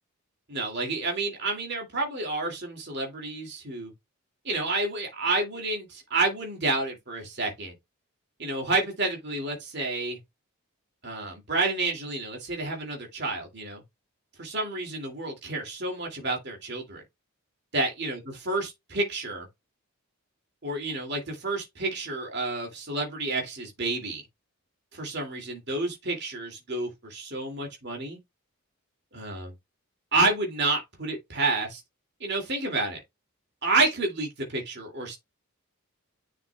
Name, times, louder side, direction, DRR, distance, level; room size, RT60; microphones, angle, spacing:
voice 1, 0.5-3.9 4.4-7.7 8.4-10.2 11.0-13.8 14.4-17.0 17.7-19.5 20.6-24.2 24.9-28.2 29.1-29.5 30.1-31.8 32.2-33.0 33.6-35.2, right 3 dB, 50° right, 2.5 m, -29 dB
10.0 x 4.9 x 2.3 m
head